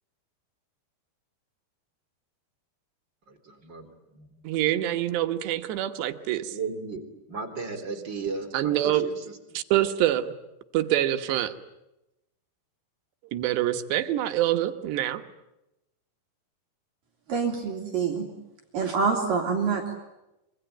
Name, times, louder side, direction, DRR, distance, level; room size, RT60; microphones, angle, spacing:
voice 1, 3.3-3.9 4.1-4.4 6.5-7.0 7.3-9.2, right 4 dB, 25° right, 3 dB, 3.7 m, -35 dB
voice 2, 4.5-6.6 8.5-9.1 9.6-10.3 10.7-11.5 13.3-15.2, right 13 dB, 75° right, 9 dB, 3.4 m, -25 dB
voice 3, 17.3-18.3 18.7-19.9, right 5 dB, 55° right, 2 dB, 3.9 m, -26 dB
26.0 x 24.0 x 9.1 m, 0.93 s
omnidirectional pair, 5.0 m